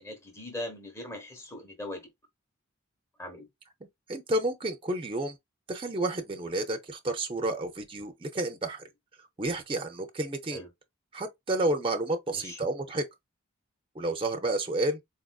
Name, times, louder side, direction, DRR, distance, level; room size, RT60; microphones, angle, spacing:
voice 1, 0.0-2.1 3.2-3.5 10.5-10.7 12.3-12.6, left 1 dB, 15° left, 0.9 m, -40 dB
voice 2, 4.1-5.4 5.7-8.8 9.4-10.6 11.1-13.1 14.0-15.0, right 2 dB, 25° right, 0.5 m, -30 dB
4.1 x 2.5 x 2.3 m
head